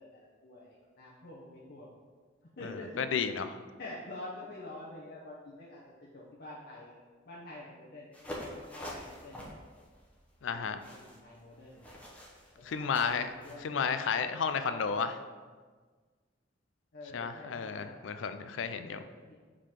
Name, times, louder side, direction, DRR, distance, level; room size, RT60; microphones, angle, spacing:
voice 1, 0.0-1.9 2.6-3.1 3.8-7.0 7.3-9.6 10.5-11.9 12.5-14.4 14.7-15.3 16.9-18.0 18.8-19.3, left 2 dB, 55° left, -6 dB, 0.9 m, -48 dB
voice 2, 2.6-3.6 10.4-10.8 12.6-13.3 13.6-15.1 17.1-19.0, left 6 dB, 80° left, 10 dB, 0.4 m, -32 dB
sound 1, 8.1-13.6, left 1 dB, 10° left, 1.0 m, -46 dB
4.9 x 3.8 x 5.8 m, 1.4 s
head